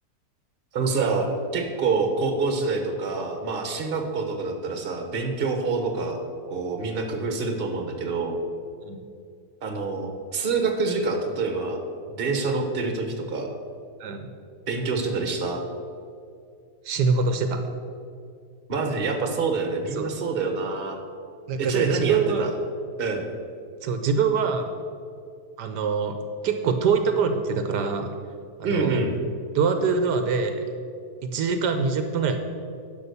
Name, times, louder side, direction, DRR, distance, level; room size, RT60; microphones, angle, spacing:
voice 1, 0.7-6.2 6.5-8.4 9.6-11.8 12.2-13.5 14.7-15.6 18.7-21.0 21.6-22.5 23.0-23.3 28.6-29.1, right 4 dB, 35° right, 4 dB, 1.2 m, -26 dB
voice 2, 16.8-17.6 19.9-20.1 21.5-22.4 23.8-24.7 25.6-26.2 26.4-28.1 28.6-29.0 29.5-30.7 31.2-32.4, right 5 dB, 75° right, 7 dB, 1.3 m, -24 dB
11.0 x 5.6 x 6.8 m, 2.4 s
omnidirectional pair, 1.8 m